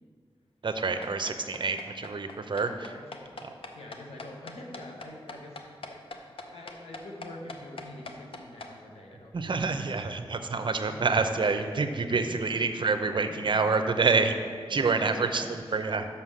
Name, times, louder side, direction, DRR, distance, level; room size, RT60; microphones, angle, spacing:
voice 1, 0.6-3.0 3.4-3.5 9.3-14.3 14.7-16.1, right 4 dB, 55° right, 8 dB, 0.6 m, -27 dB
sound 1, 0.8-8.7, left 3 dB, 65° left, 0.6 m, -42 dB
voice 2, 3.6-9.8 10.5-11.0 12.1-12.6 13.3-13.7 14.0-14.1 14.7-15.4 15.7-15.9, left 1 dB, 90° left, 0 dB, 1.0 m, -46 dB
5.7 x 5.6 x 6.2 m, 2.1 s
cardioid pair, 55°, 10 cm